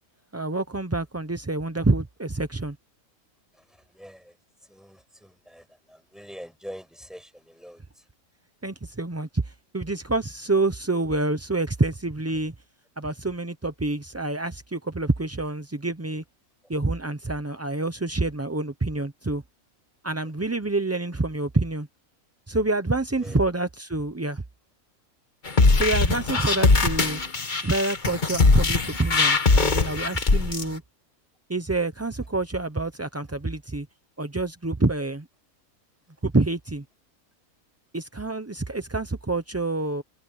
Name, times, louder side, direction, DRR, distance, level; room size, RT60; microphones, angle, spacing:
voice 1, 0.3-2.8 8.6-12.5 13.0-16.2 16.7-19.4 20.0-21.9 22.5-24.4 25.8-27.2 27.6-30.8 31.5-33.9 34.2-35.3 36.2-36.8 37.9-40.0, right 2 dB, 20° right, 0.4 m, -27 dB
voice 2, 3.5-4.4 4.7-7.8 23.2-23.4, equal, ahead, 5.9 m, -44 dB
sound 1, 25.5-30.6, left 3 dB, 35° left, 1.5 m, -21 dB
omnidirectional pair, 1.5 m